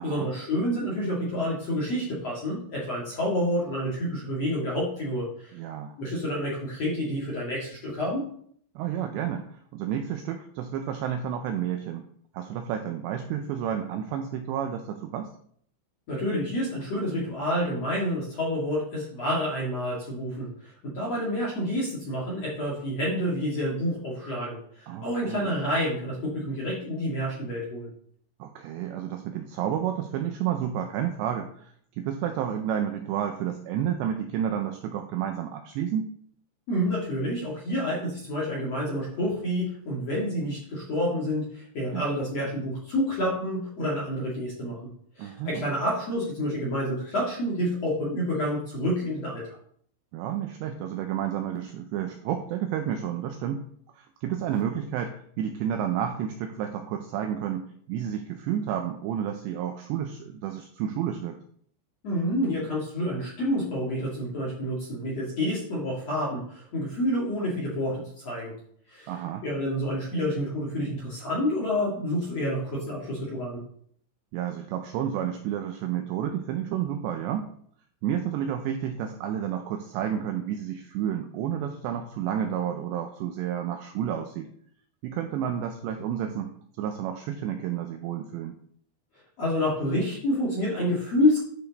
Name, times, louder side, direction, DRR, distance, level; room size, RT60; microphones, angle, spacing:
voice 1, 0.0-5.6 6.0-8.3 16.1-27.9 36.7-44.8 45.2-49.5 62.0-68.5 68.9-69.2 69.4-73.6 89.4-91.4, equal, 50° left, -5 dB, 2.0 m, -28 dB
voice 2, 5.5-6.0 8.8-12.1 12.3-15.3 24.9-25.6 28.4-36.1 41.9-42.1 45.2-45.7 50.1-53.6 53.9-61.4 69.1-69.5 74.3-77.5 78.0-84.5 85.0-86.5 86.8-88.6, right 9 dB, 85° right, 5 dB, 2.5 m, -31 dB
11.5 x 5.2 x 4.0 m, 0.63 s
omnidirectional pair, 5.7 m